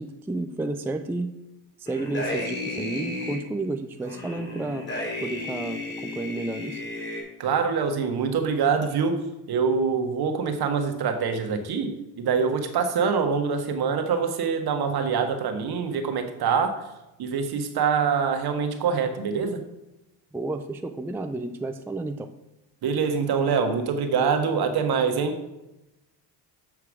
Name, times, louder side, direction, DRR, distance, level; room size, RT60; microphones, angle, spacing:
voice 1, 0.0-1.4 1.8-4.9 5.2-6.8 20.3-22.3, right 2 dB, 5° right, 7 dB, 0.4 m, -31 dB
sound 1, 1.9-3.4 4.0-7.2, left 1 dB, 25° left, 3.0 m, -33 dB
voice 2, 7.4-16.9 17.2-19.6 22.8-25.4, right 6 dB, 55° right, 6 dB, 1.3 m, -25 dB
7.3 x 4.7 x 4.8 m, 0.93 s
hypercardioid pair, 65°, 46 cm